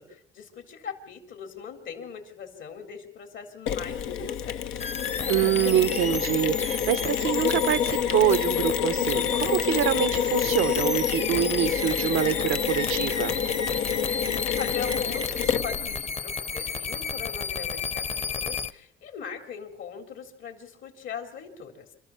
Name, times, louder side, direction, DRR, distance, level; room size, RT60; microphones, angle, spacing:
voice 1, 0.0-4.9 14.6-21.9, left 7 dB, 75° left, 5 dB, 3.9 m, -40 dB
Mechanisms, 3.7-16.0, left 9 dB, 90° left, 1.0 m, -28 dB
sound 1, 4.8-18.7, left 5 dB, 35° left, 0.9 m, -32 dB
voice 2, 5.3-13.3, right 12 dB, 85° right, 15 dB, 0.8 m, -25 dB
26.5 x 14.0 x 7.3 m, 0.70 s
cardioid pair, 90°, 20 cm